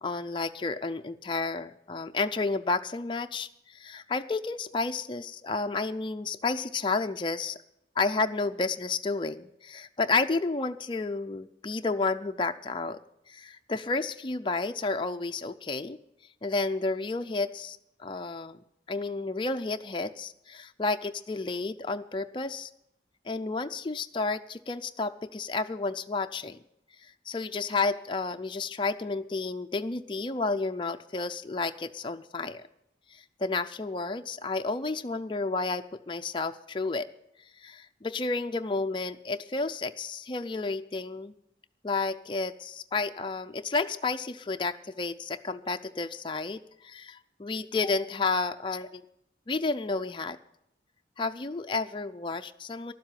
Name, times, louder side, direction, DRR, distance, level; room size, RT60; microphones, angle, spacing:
voice 1, 0.0-7.6 8.0-13.0 13.3-16.0 16.4-18.6 18.9-22.7 23.3-26.6 27.3-32.6 33.1-37.1 37.6-41.3 41.8-49.0 49.5-50.4 51.2-52.9, left 3 dB, 25° left, 7 dB, 0.4 m, -31 dB
12.0 x 7.6 x 9.0 m, 0.80 s
head